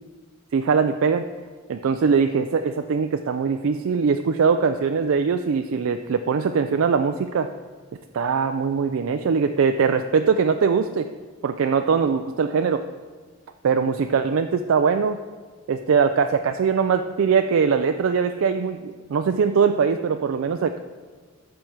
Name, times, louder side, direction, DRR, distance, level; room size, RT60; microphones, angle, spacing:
voice 1, 0.5-1.3 1.7-7.5 8.1-11.1 11.4-12.8 13.6-15.2 15.7-20.8, right 5 dB, 75° right, 7 dB, 0.4 m, -21 dB
13.5 x 5.7 x 4.6 m, 1.5 s
head